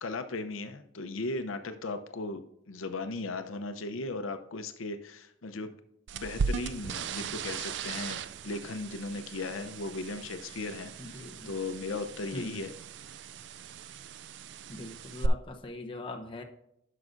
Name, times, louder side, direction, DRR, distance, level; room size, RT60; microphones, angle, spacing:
voice 1, 0.0-5.7 6.1-11.2 11.5-12.7, left 3 dB, 85° left, 8 dB, 0.7 m, -37 dB
sound 1, 6.1-15.3, right 6 dB, 60° right, 0.3 m, -38 dB
voice 2, 11.0-11.5 12.3-12.6 14.7-16.4, left 2 dB, 25° left, 2 dB, 0.8 m, -41 dB
10.5 x 6.7 x 2.6 m, 0.79 s
head